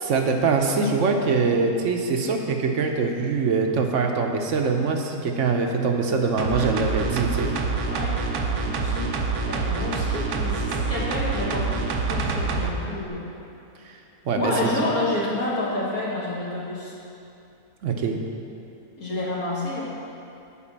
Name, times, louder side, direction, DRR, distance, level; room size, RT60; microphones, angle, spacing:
voice 1, 0.1-7.5 13.8-14.0 14.2-14.7 17.8-18.2, right 4 dB, 60° right, 3 dB, 0.9 m, -23 dB
sound 1, 6.4-12.7 13.1-13.2, right 4 dB, 90° right, 1.3 m, -26 dB
voice 2, 7.9-8.2 8.6-9.1 9.5-13.3 14.4-17.0 19.0-19.8, left 2 dB, 75° left, -6 dB, 1.8 m, -29 dB
8.4 x 5.0 x 7.3 m, 2.7 s
omnidirectional pair, 1.6 m